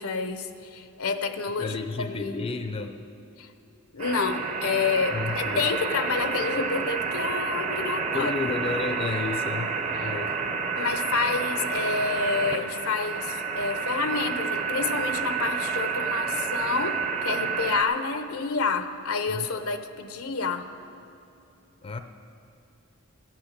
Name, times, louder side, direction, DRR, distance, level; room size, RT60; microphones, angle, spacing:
voice 1, 0.0-2.4 3.4-3.5 3.9-8.3 10.0-10.1 10.8-20.7, left 4 dB, 85° left, 9 dB, 0.7 m, -29 dB
voice 2, 1.6-3.0 5.1-5.7 8.1-9.7 10.0-10.7 19.3-19.5 21.8-22.0, left 3 dB, 25° left, 7 dB, 0.4 m, -32 dB
sound 1, 4.0-17.8, right 5 dB, 30° right, 0.7 m, -29 dB
14.5 x 8.9 x 6.6 m, 2.7 s
head